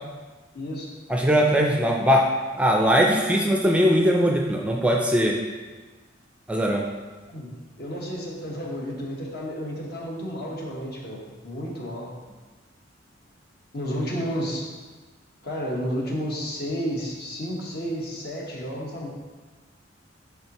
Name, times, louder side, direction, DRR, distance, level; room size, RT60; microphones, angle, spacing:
voice 1, 0.5-0.9 7.3-12.1 13.7-14.6 15.4-19.1, equal, 55° left, -3 dB, 1.3 m, -31 dB
voice 2, 1.1-2.3 2.5-5.4 6.5-6.9, equal, 5° right, 0 dB, 0.4 m, -20 dB
10.0 x 3.6 x 3.0 m, 1.3 s
head